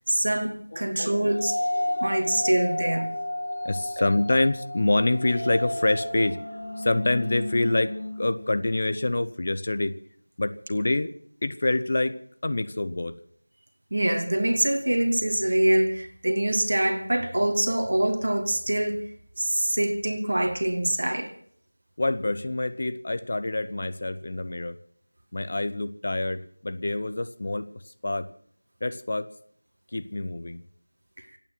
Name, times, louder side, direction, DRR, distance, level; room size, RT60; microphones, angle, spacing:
voice 1, 0.1-1.6 2.0-3.2 13.9-19.0 19.4-21.3, right 1 dB, 45° right, 1.9 m, -24 dB
sound 1, 1.3-9.1, left 1 dB, 55° left, 5.8 m, -32 dB
voice 2, 3.6-9.9 10.4-11.1 11.4-13.2 22.0-24.8 25.3-27.7 28.0-28.3 28.8-29.3 29.9-30.6, left 2 dB, 30° left, 0.8 m, -26 dB
26.5 x 9.1 x 6.0 m
figure-of-eight pair, 175°, 0 cm